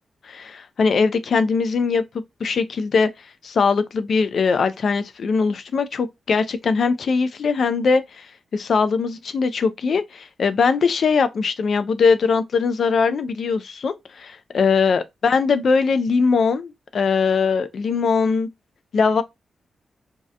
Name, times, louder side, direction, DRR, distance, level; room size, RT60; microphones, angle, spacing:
voice 1, 0.2-2.0 2.4-3.1 3.4-8.3 8.5-18.5 18.9-19.2, left 5 dB, 60° left, 0.3 m, -21 dB
2.7 x 2.1 x 2.4 m
wide cardioid pair, 145°, 0 cm